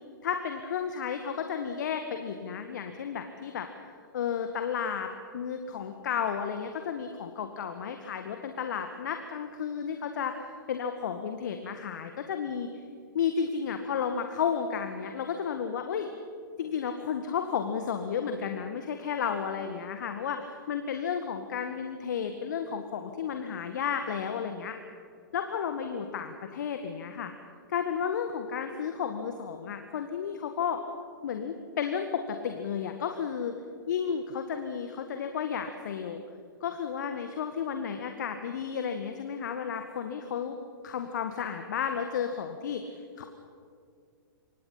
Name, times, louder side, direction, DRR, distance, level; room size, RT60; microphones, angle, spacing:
voice 1, 0.2-3.7 4.1-10.4 10.7-12.7 13.1-16.1 16.6-24.8 25.3-27.3 27.7-30.8 31.2-33.6 33.9-36.2 36.6-40.6 40.8-42.8 43.2-43.3, left 7 dB, 60° left, 6 dB, 1.8 m, -32 dB
27.0 x 25.5 x 5.8 m, 2.2 s
figure-of-eight pair, 110°, 11 cm